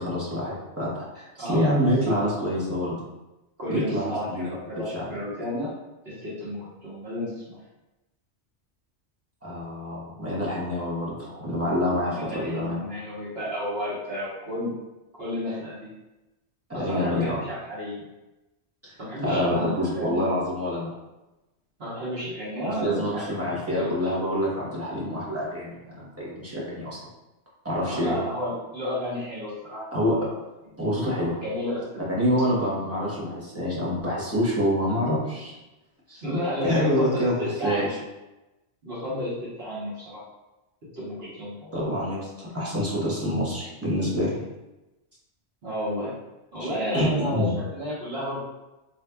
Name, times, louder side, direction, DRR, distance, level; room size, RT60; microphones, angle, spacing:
voice 1, 0.0-3.0 3.7-4.5 4.9-5.2 9.4-12.9 16.7-17.4 18.8-18.9 19.2-20.9 22.8-27.0 27.6-28.2 29.9-30.2 30.8-31.4 32.2-35.5 36.1-36.2 36.6-37.9 41.7-44.4 46.6-46.7 46.9-47.5, equal, 15° right, -7 dB, 0.9 m, -26 dB
voice 2, 1.4-1.8 2.1-2.2 3.6-5.7 6.0-7.6 12.1-14.7 15.1-15.9 16.7-18.0 19.0-20.2 21.8-24.1 27.8-29.8 30.3-30.4 31.4-32.0 34.9-35.2 36.2-37.9 38.8-40.2 40.9-41.7 45.6-46.1 46.5-48.4, left 1 dB, 55° right, -9 dB, 1.2 m, -32 dB
4.0 x 2.6 x 2.2 m, 1.0 s
omnidirectional pair, 1.2 m